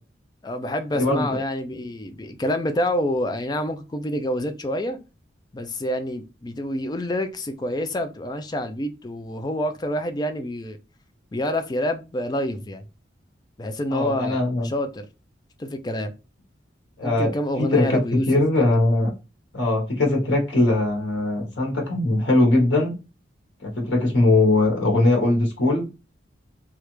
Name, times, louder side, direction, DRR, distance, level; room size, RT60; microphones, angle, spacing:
voice 1, 0.4-5.0 5.5-10.8 11.3-12.8 13.6-15.1 15.6-16.1 17.0-18.3 18.6-18.8, left 1 dB, 20° left, 0.3 m, -27 dB
voice 2, 0.9-1.2 13.9-14.7 17.0-17.3 17.6-18.0 18.3-19.1 19.5-22.9 23.6-25.9, left 2 dB, 70° left, 1.1 m, -20 dB
3.2 x 2.4 x 3.0 m
head